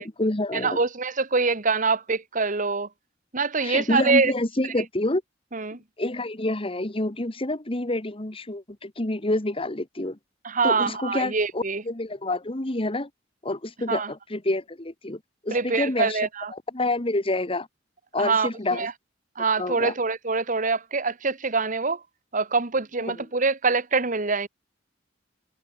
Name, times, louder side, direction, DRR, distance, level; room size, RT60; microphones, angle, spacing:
voice 1, 0.0-0.8 3.6-5.2 6.0-10.2 10.6-13.1 13.4-16.2 16.5-17.7 18.1-18.9 19.6-19.9 23.1-23.2, left 2 dB, 30° left, 1.6 m, -28 dB
voice 2, 0.6-2.9 3.3-4.3 5.5-5.8 10.4-11.8 13.9-14.1 15.5-16.5 18.2-18.9 19.4-22.0 22.3-24.5, right 4 dB, 45° right, 1.7 m, -24 dB
head